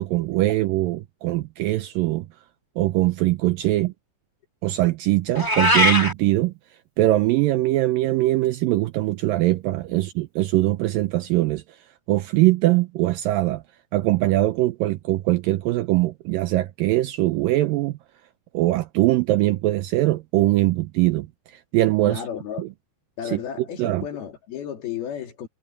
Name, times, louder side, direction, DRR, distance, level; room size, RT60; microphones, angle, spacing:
voice 1, 0.0-2.3 2.8-3.9 4.6-6.5 7.0-11.8 12.1-13.6 13.9-18.0 18.5-22.2 22.6-22.7 23.2-23.4 23.8-24.0, right 17 dB, 85° right, 2.0 m, -22 dB
Meow, 5.3-6.1, left 1 dB, 10° left, 1.5 m, -19 dB
voice 2, 22.1-22.6 23.2-25.5, left 9 dB, 70° left, 4.6 m, -33 dB
omnidirectional pair, 4.6 m